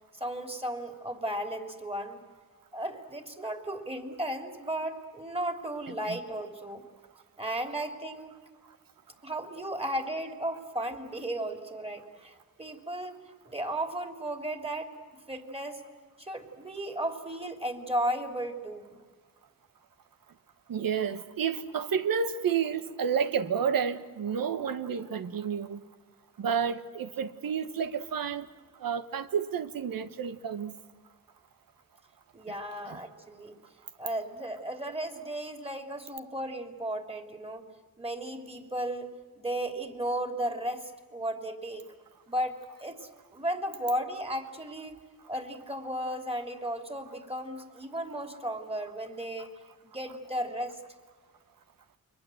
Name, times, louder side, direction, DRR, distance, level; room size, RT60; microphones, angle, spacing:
voice 1, 0.1-2.2 2.7-6.9 7.4-8.4 9.2-14.9 15.3-15.8 16.2-19.0 32.3-33.6 34.0-37.6 38.0-41.9 42.3-45.0 45.3-49.5 49.8-50.8, right 1 dB, 15° right, 3.2 m, -35 dB
voice 2, 20.7-25.8 26.4-28.4 28.8-30.7 32.9-33.0, right 7 dB, 85° right, 1.3 m, -30 dB
29.5 x 23.0 x 7.9 m
cardioid pair, 85°, 34 cm